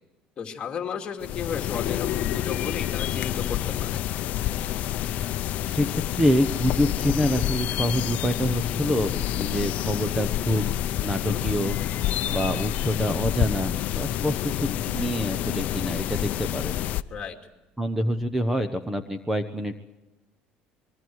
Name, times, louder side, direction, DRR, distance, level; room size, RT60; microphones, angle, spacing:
voice 1, 0.4-4.0 11.2-11.4 17.1-17.4, left 6 dB, 30° left, 2 dB, 2.5 m, -34 dB
sound 1, 1.2-17.0, left 12 dB, 55° left, 0.7 m, -28 dB
voice 2, 5.7-10.7 11.0-11.8 12.2-16.7 17.8-19.8, equal, 5° right, 9 dB, 1.0 m, -26 dB
25.0 x 22.5 x 4.8 m, 1.0 s
cardioid pair, 145°, 3 cm